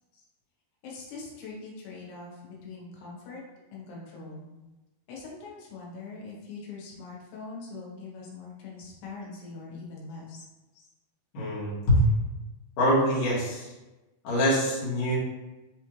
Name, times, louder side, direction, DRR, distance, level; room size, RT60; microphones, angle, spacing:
voice 1, 0.8-3.4 3.7-4.5 5.1-10.5, left 3 dB, 80° left, -3 dB, 3.0 m, -42 dB
voice 2, 11.3-12.1 12.8-13.7 14.2-15.2, equal, 60° left, -9 dB, 1.9 m, -24 dB
6.3 x 2.5 x 3.0 m, 1.1 s
omnidirectional pair, 4.9 m